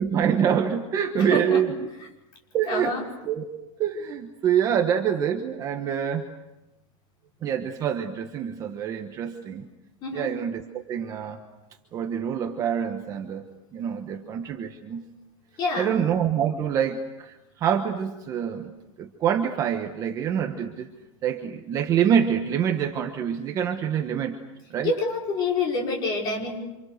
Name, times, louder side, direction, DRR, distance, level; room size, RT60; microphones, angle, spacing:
voice 1, 0.0-1.9 2.5-2.9 3.2-3.5 3.8-6.3 7.4-9.7 10.1-11.4 11.9-13.5 13.7-15.1 15.8-18.7 19.0-20.9 21.2-24.4 24.7-24.9, right 8 dB, 20° right, 4 dB, 1.2 m, -26 dB
voice 2, 1.2-1.6 2.7-3.0 10.0-10.3 15.6-16.0 24.8-26.6, left 3 dB, 25° left, -1 dB, 5.7 m, -27 dB
29.0 x 27.0 x 6.6 m, 0.98 s
supercardioid pair, 180°, 17 cm